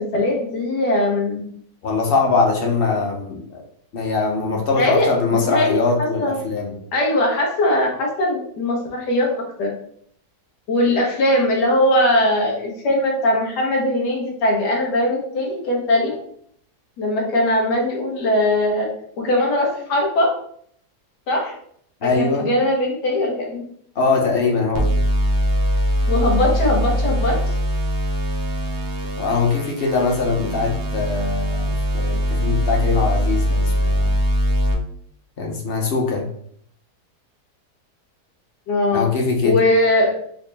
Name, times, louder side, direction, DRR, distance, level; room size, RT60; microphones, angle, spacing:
voice 1, 0.0-1.4 4.8-6.4 6.9-9.8 10.7-16.2 17.0-18.9 19.2-20.4 21.3-21.5 22.0-23.6 26.0-27.4 30.4-30.5 38.7-39.1 39.4-40.2, left 1 dB, 80° left, -1 dB, 1.5 m, -20 dB
voice 2, 1.8-3.6 3.9-6.7 22.0-22.5 24.0-24.9 29.2-34.1 35.4-36.2 38.9-39.6, left 4 dB, 60° left, 0 dB, 0.6 m, -21 dB
sound 1, 24.7-34.7, equal, 80° right, 0.5 m, -21 dB
4.9 x 2.0 x 3.2 m, 0.65 s
omnidirectional pair, 1.7 m